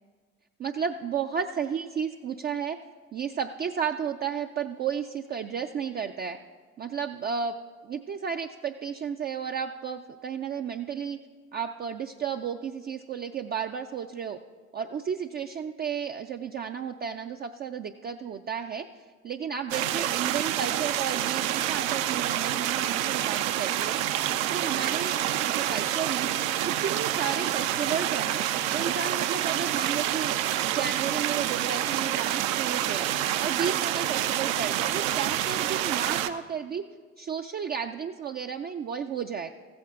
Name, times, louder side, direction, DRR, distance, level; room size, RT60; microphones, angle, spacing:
voice 1, 0.6-2.8 3.1-6.4 6.8-7.6 7.8-11.2 11.5-14.4 14.7-18.9 19.2-24.0 24.5-26.3 26.6-28.4 28.7-30.4 30.7-33.1 33.4-36.8 37.2-39.5, right 7 dB, 25° right, 5 dB, 0.4 m, -33 dB
sound 1, 19.7-36.3, right 12 dB, 75° right, 0.6 m, -28 dB
14.5 x 8.7 x 3.6 m, 1.5 s
hypercardioid pair, 70°, 41 cm